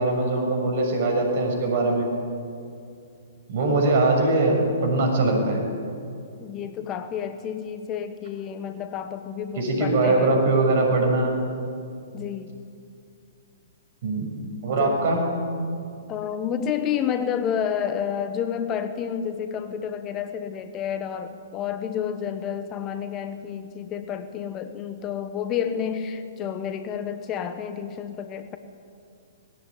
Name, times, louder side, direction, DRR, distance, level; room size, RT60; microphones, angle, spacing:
voice 1, 0.0-2.1 3.5-5.6 9.6-11.4 14.0-14.3 14.6-15.2, right 2 dB, 50° right, 2 dB, 6.7 m, -21 dB
voice 2, 6.4-10.4 12.1-12.6 14.8-15.1 16.1-28.6, left 8 dB, 25° left, 9 dB, 1.2 m, -30 dB
20.0 x 16.5 x 9.3 m, 2.4 s
figure-of-eight pair, 115°, 0 cm